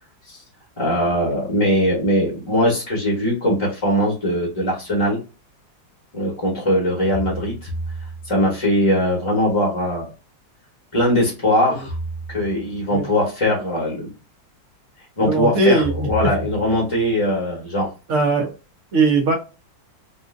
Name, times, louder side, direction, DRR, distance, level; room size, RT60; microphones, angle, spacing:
voice 1, 0.8-5.2 6.1-7.7 8.2-10.1 10.9-11.9 12.3-14.1 15.2-17.9, equal, 20° left, -3 dB, 0.9 m, -20 dB
sound 1, 4.5-4.6 7.1-8.7 11.9-13.0 15.8-17.1, right 2 dB, 65° left, 1.1 m, -32 dB
voice 2, 15.2-16.1 18.1-18.5 18.9-19.3, right 3 dB, 55° right, 2 dB, 0.8 m, -19 dB
3.8 x 2.4 x 2.5 m, 0.31 s
omnidirectional pair, 2.0 m